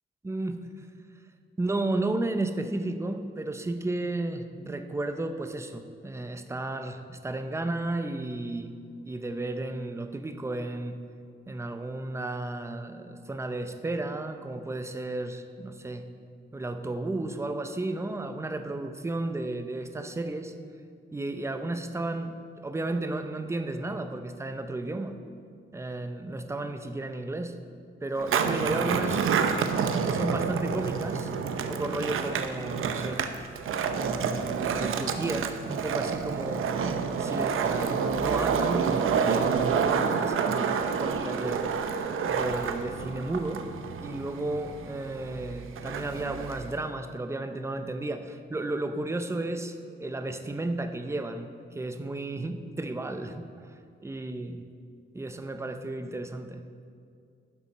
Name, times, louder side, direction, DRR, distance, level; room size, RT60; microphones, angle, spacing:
voice 1, 0.2-0.7 1.6-8.7 9.0-11.0 11.5-16.1 16.5-20.5 21.1-25.2 25.7-27.6 28.0-29.3 30.0-33.2 33.9-41.9 42.3-43.7 44.0-53.5 54.0-54.7 55.1-56.6, right 2 dB, 15° right, 7 dB, 0.6 m, -33 dB
Skateboard, 28.2-46.8, right 6 dB, 75° right, 0.7 m, -28 dB
11.5 x 7.1 x 5.4 m, 2.3 s
wide cardioid pair, 140°, 21 cm